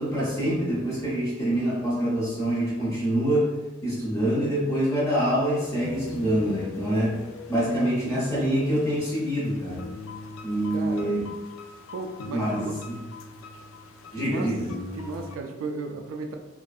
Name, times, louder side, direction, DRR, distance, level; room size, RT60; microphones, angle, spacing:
voice 1, 0.0-3.5 3.8-7.2 7.5-9.9 10.4-11.2 12.3-13.0 14.1-14.7, right 1 dB, 15° left, -7 dB, 0.5 m, -25 dB
sound 1, 5.5-15.4, left 4 dB, 80° left, 0.3 m, -41 dB
voice 2, 10.7-11.2 11.9-12.8 14.1-14.5 15.0-16.4, right 4 dB, 75° right, 4 dB, 0.3 m, -35 dB
2.6 x 2.4 x 2.2 m, 1.1 s
head